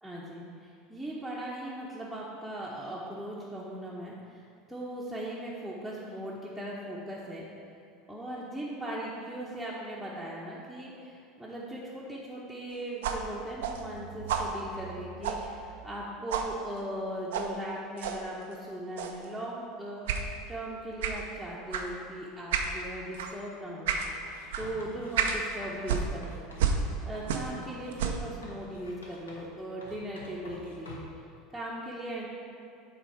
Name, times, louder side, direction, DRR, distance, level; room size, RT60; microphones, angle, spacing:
voice 1, 0.0-7.5 8.1-23.9 24.6-26.5 27.0-31.0 31.5-32.3, right 1 dB, ahead, -8 dB, 0.9 m, -39 dB
sound 1, 13.0-16.0 16.3-16.5 17.3-17.5 18.0-18.2 19.0-19.2 20.1-20.3 21.0-21.2 21.7-21.9 22.5-22.7 23.1-23.3 23.9-24.1 24.5-24.7 25.1-25.4 25.8-27.6 27.9-28.3, right 6 dB, 65° right, 0.5 m, -31 dB
Writing, 24.1-26.7 27.1-29.6 29.8-31.2, left 1 dB, 80° left, 0.9 m, -49 dB
6.8 x 3.9 x 4.6 m, 2.5 s
figure-of-eight pair, 75°, 0 cm